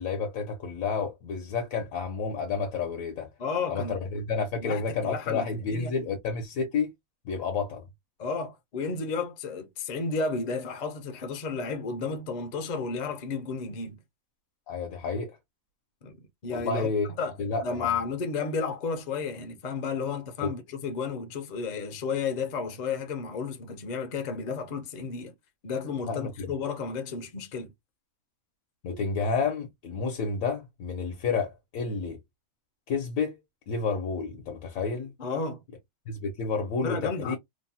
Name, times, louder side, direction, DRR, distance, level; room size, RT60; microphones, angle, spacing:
voice 1, 0.0-3.3 3.7-6.9 7.2-7.9 14.7-15.4 16.5-17.1 17.4-18.0 20.4-20.5 26.1-26.5 28.8-32.2 32.9-33.4 33.7-35.1 36.1-37.4, left 5 dB, 75° left, 1.1 m, -30 dB
voice 2, 3.4-3.9 4.6-5.9 8.2-14.0 16.0-16.9 17.2-17.4 17.6-25.3 25.6-27.7 35.2-35.6 36.8-37.4, left 5 dB, 55° left, 0.5 m, -32 dB
3.0 x 2.0 x 2.6 m
omnidirectional pair, 1.4 m